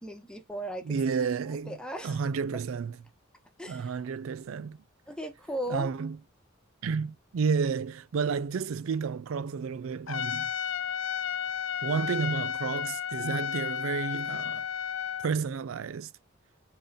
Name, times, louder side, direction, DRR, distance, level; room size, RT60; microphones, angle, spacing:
voice 1, 0.0-1.0 1.7-2.2 3.6-3.9 5.1-5.9, right 1 dB, 5° left, 1.0 m, -37 dB
voice 2, 0.8-1.8 2.0-3.0 3.7-4.8 5.7-6.2 6.8-10.5 11.8-14.7 15.2-16.1, right 5 dB, 80° right, 0.4 m, -31 dB
Trumpet, 10.1-15.3, left 8 dB, 80° left, 0.5 m, -33 dB
4.0 x 3.8 x 2.4 m
head